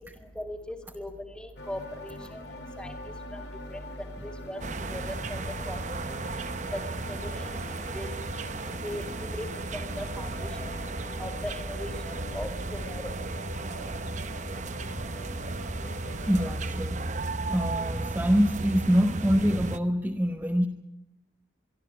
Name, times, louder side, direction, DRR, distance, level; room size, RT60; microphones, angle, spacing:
voice 1, 0.4-1.1 1.4-2.1 2.8-2.9 3.3-3.4 3.7-3.8 4.2-4.6 4.9-5.0 5.3-5.4 5.7-5.8 6.7-6.8 7.1-7.2 7.9-8.1 8.8-9.0 9.3-9.5 10.0-10.3 11.2-11.9 12.3-13.0, equal, 5° left, 5 dB, 2.3 m, -37 dB
sound 1, 1.6-16.6, left 1 dB, 70° left, 2.4 m, -44 dB
sound 2, 4.6-19.8, right 2 dB, 40° right, 0.8 m, -34 dB
voice 2, 16.3-17.0 17.4-20.7, equal, 10° right, 3 dB, 1.0 m, -25 dB
24.0 x 12.5 x 9.9 m, 0.89 s
head